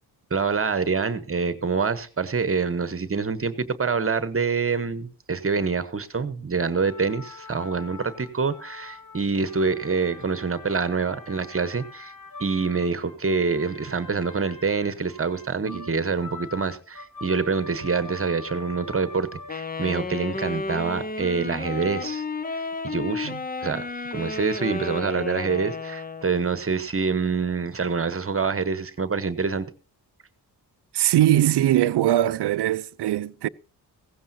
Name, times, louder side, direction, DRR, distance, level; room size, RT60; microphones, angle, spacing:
voice 1, 0.3-12.1 12.4-22.2 22.5-23.3 23.6-23.8 24.1-29.7, right 5 dB, 35° right, 1.1 m, -26 dB
sound 1, 6.8-19.8, left 3 dB, 55° left, 2.1 m, -43 dB
Wind instrument woodwind instrument, 19.5-26.4, left 3 dB, 20° left, 0.7 m, -32 dB
voice 2, 30.9-33.5, right 13 dB, 75° right, 0.6 m, -21 dB
16.0 x 15.0 x 2.8 m
cardioid pair, 85°, 40 cm